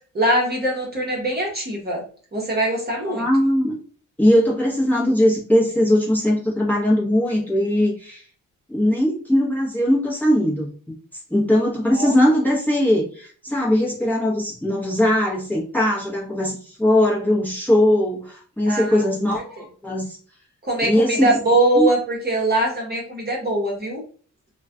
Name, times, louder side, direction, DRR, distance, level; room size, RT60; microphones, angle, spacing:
voice 1, 0.1-2.0 2.3-3.3 11.9-12.1 18.7-19.0 20.7-24.0, right 1 dB, 30° right, -1 dB, 0.9 m, -22 dB
voice 2, 3.1-3.7 4.2-8.2 8.7-10.7 11.3-20.2 20.8-21.3 21.7-21.9, left 1 dB, 5° left, -3 dB, 0.8 m, -20 dB
2.3 x 2.2 x 3.6 m, 0.43 s
wide cardioid pair, 140°, 32 cm